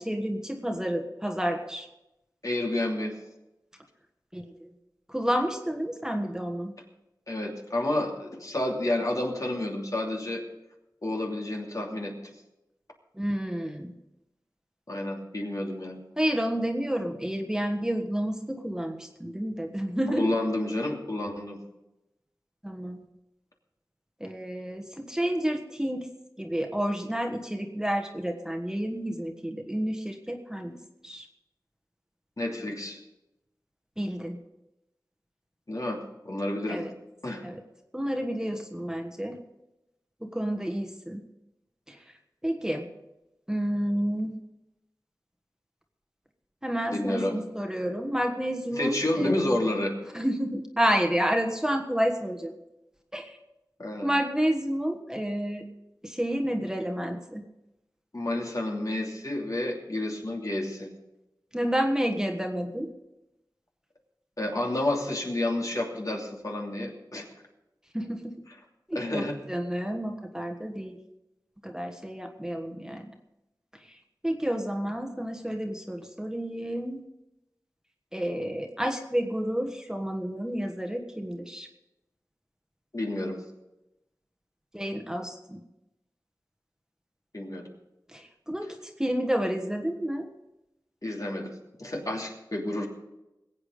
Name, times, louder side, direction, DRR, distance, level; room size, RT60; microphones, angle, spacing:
voice 1, 0.0-1.9 4.3-4.7 5.1-6.7 13.2-13.9 16.2-20.3 22.6-23.0 24.2-26.1 26.4-30.8 31.0-31.3 34.0-34.4 36.7-36.9 37.4-37.6 37.9-39.4 40.2-41.2 41.9-42.0 42.4-42.9 43.5-44.3 46.6-49.4 50.1-52.5 53.1-53.3 54.0-55.6 56.0-57.4 61.5-62.9 67.9-68.4 68.9-71.0 71.6-73.1 74.2-77.0 78.1-81.7 84.7-85.6 88.1-90.2, equal, 10° right, 3 dB, 1.4 m, -30 dB
voice 2, 2.4-3.2 7.3-10.4 11.0-12.1 14.9-16.0 20.2-21.6 32.4-33.0 35.7-36.8 37.2-37.5 46.9-47.4 48.8-50.0 53.8-54.1 58.1-60.9 64.4-67.3 68.9-69.4 82.9-83.4 87.3-87.6 91.0-91.5 91.8-92.9, left 1 dB, 50° left, 0 dB, 2.9 m, -30 dB
21.0 x 8.5 x 5.1 m, 0.93 s
wide cardioid pair, 60°, 7 cm